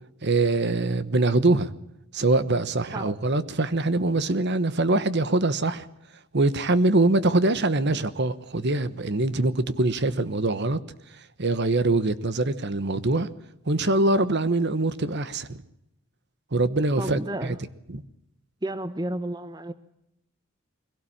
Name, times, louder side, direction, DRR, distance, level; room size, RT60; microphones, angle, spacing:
voice 1, 0.2-1.7 2.1-5.9 6.3-10.8 11.4-13.3 13.7-15.6 16.5-17.5 17.9-18.0, right 2 dB, 50° right, 14 dB, 1.1 m, -23 dB
voice 2, 17.0-17.6 18.6-19.7, right 1 dB, 20° right, 13 dB, 0.8 m, -31 dB
22.5 x 17.0 x 8.7 m, 0.83 s
head